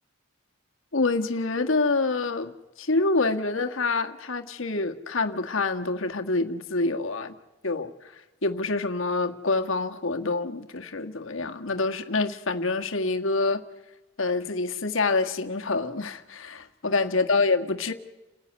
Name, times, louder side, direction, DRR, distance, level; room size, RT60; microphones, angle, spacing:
voice 1, 0.9-7.3 7.6-8.1 8.4-13.6 14.2-17.9, left 3 dB, 70° left, 1.6 m, -26 dB
30.0 x 15.0 x 9.5 m
head